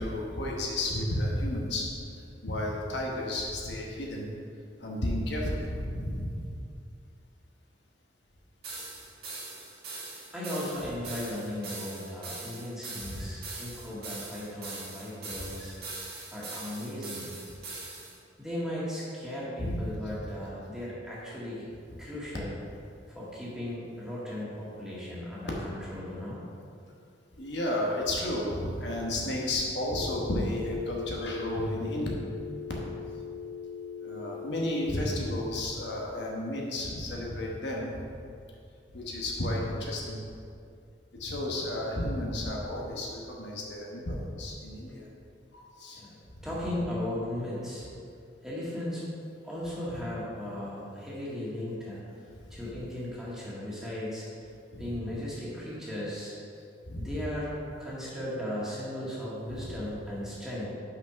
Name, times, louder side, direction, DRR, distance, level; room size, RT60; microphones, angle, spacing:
voice 1, 0.0-1.9 2.1-4.3 4.8-6.5 13.1-13.2 19.6-20.0 27.4-32.1 34.0-38.0 38.9-40.2 41.2-45.0 45.5-46.0 54.7-55.0 56.9-57.1 59.5-59.6, left 1 dB, 65° left, -2 dB, 1.2 m, -32 dB
sound 1, 8.6-18.2, right 3 dB, 55° right, 1.9 m, -42 dB
voice 2, 10.3-15.8 16.3-17.3 18.4-21.7 22.0-22.5 23.1-26.4 45.9-47.9 48.4-49.0 49.4-52.0 52.5-54.3 54.8-56.3 56.9-60.7, left 1 dB, 5° right, -8 dB, 1.7 m, -36 dB
Telephone, 30.0-35.0, left 6 dB, 40° left, 0.5 m, -40 dB
5.8 x 5.8 x 5.8 m, 2.4 s
head